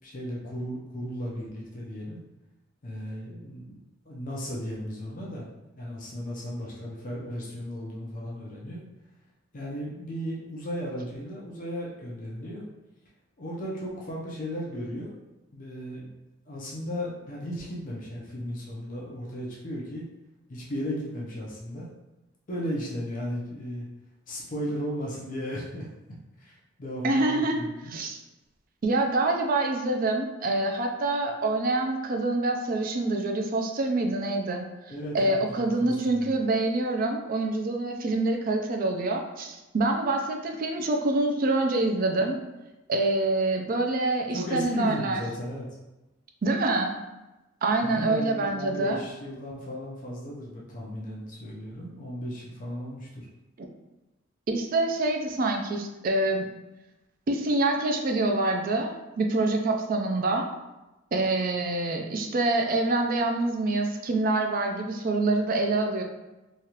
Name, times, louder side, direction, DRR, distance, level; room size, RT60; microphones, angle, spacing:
voice 1, 0.0-2.2 2.8-5.5 5.8-8.8 9.5-12.7 13.4-15.1 15.5-16.2 16.5-20.0 20.5-21.9 22.5-23.9 24.3-25.9 26.4-28.0 34.9-36.3 44.3-45.7 47.8-53.3, equal, 45° left, -4 dB, 0.6 m, -35 dB
voice 2, 27.0-27.6 27.9-28.2 28.8-34.6 35.1-42.4 42.9-45.2 46.4-46.9 47.6-49.0 53.6-53.7 54.5-56.5 57.3-60.5 61.1-66.0, right 2 dB, 45° right, 3 dB, 0.4 m, -26 dB
3.1 x 2.4 x 2.8 m, 1.0 s
head